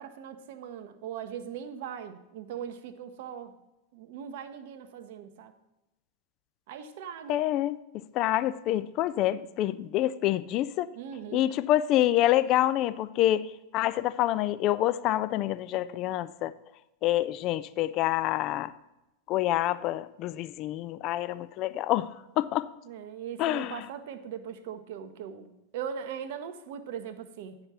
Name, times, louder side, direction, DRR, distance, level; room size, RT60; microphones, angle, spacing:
voice 1, 0.0-3.5 3.9-5.5 6.7-7.4 10.9-11.5 22.8-27.6, right 8 dB, 50° right, 10 dB, 0.7 m, -40 dB
voice 2, 7.3-10.9 11.3-16.5 17.0-18.7 19.3-22.7 23.4-23.8, left 14 dB, 40° left, 14 dB, 0.3 m, -27 dB
9.8 x 4.9 x 5.6 m, 0.94 s
figure-of-eight pair, 90°, 0 cm